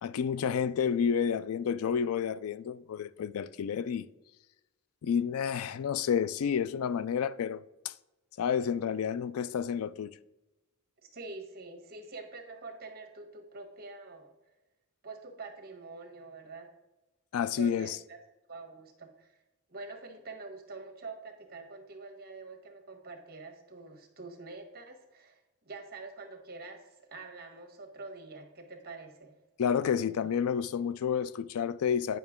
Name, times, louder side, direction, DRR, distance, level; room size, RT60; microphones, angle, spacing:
voice 1, 0.0-4.1 5.0-7.9 8.4-10.1 17.3-18.0 29.6-32.2, left 7 dB, 90° left, 0.4 m, -30 dB
voice 2, 11.1-14.3 15.0-16.7 17.5-18.2 18.5-19.3 19.7-25.4 25.6-29.3, right 3 dB, 45° right, 1.3 m, -46 dB
9.3 x 5.8 x 3.6 m
head